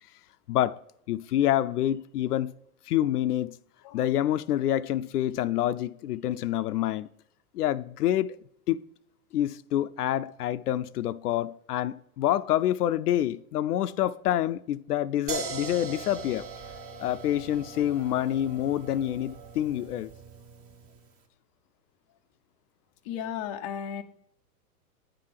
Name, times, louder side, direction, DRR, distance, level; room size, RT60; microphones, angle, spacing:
voice 1, 0.5-0.8 1.1-2.5 2.9-3.5 3.9-7.1 7.5-8.4 8.7-8.8 9.3-16.5 17.0-20.1, left 12 dB, 90° left, 0.5 m, -27 dB
sound 1, 15.3-21.1, right 5 dB, 30° right, 1.2 m, -40 dB
voice 2, 23.0-24.0, left 8 dB, 25° left, 0.3 m, -34 dB
9.6 x 3.8 x 6.6 m
hypercardioid pair, 130°, 44 cm